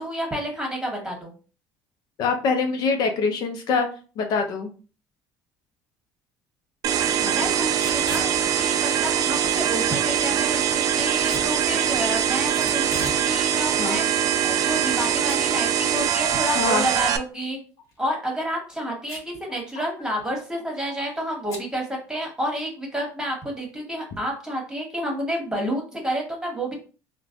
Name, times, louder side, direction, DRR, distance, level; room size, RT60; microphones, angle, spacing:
voice 1, 0.0-1.3 7.3-17.6 18.0-26.7, equal, 10° right, 0 dB, 1.3 m, -30 dB
voice 2, 2.2-3.9 4.2-4.7 7.2-7.4 13.8-14.0 16.5-16.9 19.5-19.9, left 4 dB, 65° left, 5 dB, 0.5 m, -24 dB
sound 1, 6.8-17.2, right 9 dB, 50° right, 0.4 m, -23 dB
Packing tape duct tape / Tearing, 7.7-8.3 11.2-11.5 12.5-13.2 13.6-13.7 14.4-15.0 15.3-15.4 15.8-15.9 17.8-18.1 19.0-19.4 19.7-19.8 20.0-20.4 21.5-21.7, left 2 dB, 45° left, 1.2 m, -37 dB
3.1 x 2.1 x 2.4 m, 0.37 s
supercardioid pair, 85°, 8 cm